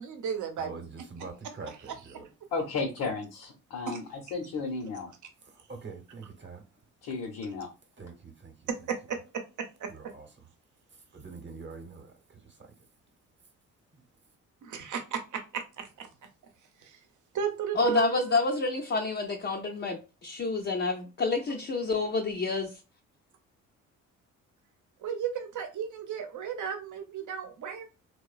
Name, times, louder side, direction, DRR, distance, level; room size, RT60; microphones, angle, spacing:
voice 1, 0.0-0.8 3.9-4.0 8.7-10.1 14.6-16.1 16.8-17.0 17.3-18.4 25.0-27.8, right 7 dB, 55° right, 0.8 m, -34 dB
voice 2, 0.6-2.3 5.4-6.6 8.0-8.7 9.9-10.5 11.1-12.7 13.9-14.0, right 4 dB, 30° right, 0.9 m, -45 dB
voice 3, 2.5-5.1 7.0-7.7, left 4 dB, 65° left, 0.8 m, -34 dB
voice 4, 17.8-22.8, left 3 dB, 30° left, 0.5 m, -28 dB
2.9 x 2.2 x 2.4 m
supercardioid pair, 55°, 35 cm